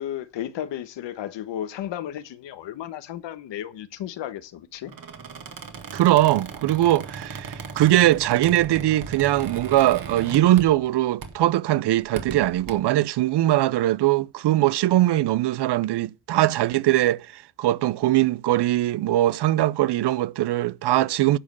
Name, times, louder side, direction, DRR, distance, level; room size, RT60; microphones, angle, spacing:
voice 1, 0.0-4.9, left 11 dB, 85° left, 1.1 m, -34 dB
Squeak, 4.8-10.9 11.2-11.5 12.0-12.7, right 5 dB, 55° right, 1.9 m, -37 dB
voice 2, 5.9-21.4, right 14 dB, 70° right, 0.6 m, -21 dB
10.0 x 5.2 x 7.2 m
cardioid pair, 90°, 42 cm